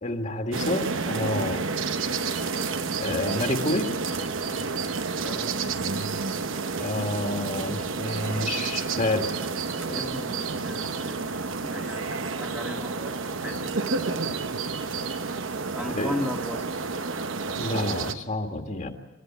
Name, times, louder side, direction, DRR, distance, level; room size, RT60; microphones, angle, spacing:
voice 1, 0.0-1.7 3.0-3.9 6.8-9.3 9.9-10.1 15.9-16.2 17.5-18.9, left 2 dB, 40° left, 4 dB, 1.8 m, -29 dB
sound 1, 0.5-18.1, right 4 dB, 80° right, 0.9 m, -30 dB
voice 2, 5.2-5.6 9.8-14.7 15.7-16.8, equal, 5° right, 1 dB, 1.5 m, -37 dB
26.5 x 13.5 x 9.2 m, 1.1 s
head